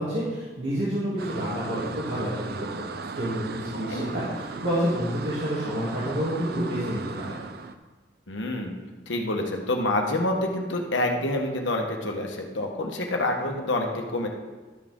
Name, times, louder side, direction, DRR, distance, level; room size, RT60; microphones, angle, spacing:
voice 1, 0.0-2.8 3.1-7.4, equal, 75° right, -11 dB, 2.8 m, -29 dB
sound 1, 1.2-7.8, right 4 dB, 55° right, 0.5 m, -37 dB
voice 2, 8.3-8.8 9.1-14.3, left 1 dB, 85° left, 2 dB, 1.3 m, -27 dB
12.5 x 6.2 x 3.7 m, 1.3 s
head